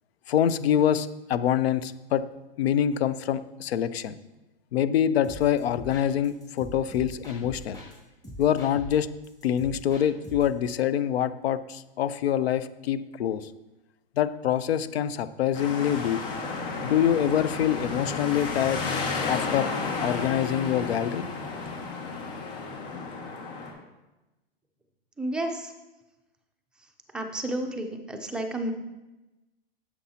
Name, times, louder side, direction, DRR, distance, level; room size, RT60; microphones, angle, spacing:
voice 1, 0.3-2.2 2.6-4.2 4.7-7.8 8.4-9.1 9.4-13.5 14.2-16.2 16.8-18.8 19.3-19.7 20.0-21.2, left 10 dB, 90° left, 14 dB, 0.6 m, -25 dB
sound 1, 5.2-7.9 8.2-10.6, right 1 dB, 10° left, 2.3 m, -43 dB
sound 2, 15.5-23.7, left 4 dB, 65° left, 2.0 m, -32 dB
voice 2, 25.2-25.7 27.1-28.7, right 1 dB, 5° right, 3 dB, 0.4 m, -31 dB
9.8 x 7.2 x 2.9 m, 1.0 s
hypercardioid pair, 145°, 30 cm